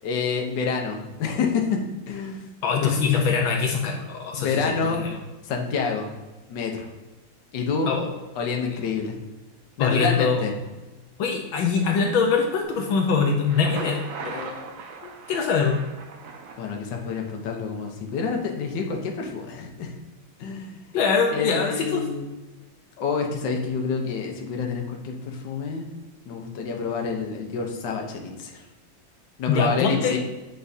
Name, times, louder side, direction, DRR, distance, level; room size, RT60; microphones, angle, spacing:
voice 1, 0.0-1.8 2.1-2.5 2.8-3.0 4.4-5.0 5.4-6.1 6.5-6.9 7.5-7.9 8.4-9.1 9.8-10.5 16.6-19.9 20.4-20.8 21.3-22.2 23.0-25.9 26.3-28.6 29.4-30.2, left 5 dB, 65° left, 2 dB, 1.6 m, -28 dB
voice 2, 2.6-5.2 7.9-8.1 9.8-10.5 11.2-14.0 14.2-14.6 15.3-15.8 20.9-22.0 29.5-30.2, left 5 dB, 85° left, 1 dB, 1.6 m, -23 dB
Thunder, 13.3-17.3, right 4 dB, 60° right, 0.9 m, -39 dB
8.9 x 4.7 x 2.7 m, 1.1 s
omnidirectional pair, 2.1 m